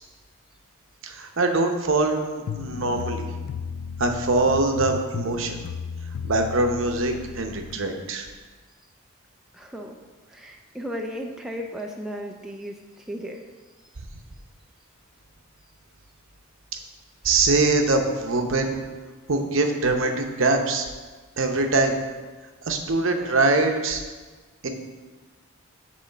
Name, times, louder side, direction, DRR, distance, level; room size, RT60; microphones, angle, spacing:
voice 1, 1.0-3.3 4.0-5.6 6.2-8.3 17.2-18.8 19.3-20.9 21.4-22.0 22.7-24.0 24.6-24.7, right 3 dB, 65° right, 4 dB, 0.8 m, -23 dB
sound 1, 2.5-7.8, left 6 dB, 85° left, 0.4 m, -34 dB
voice 2, 9.5-10.0 10.3-13.5, equal, 5° right, 1 dB, 0.3 m, -35 dB
8.5 x 3.1 x 6.5 m, 1.3 s
head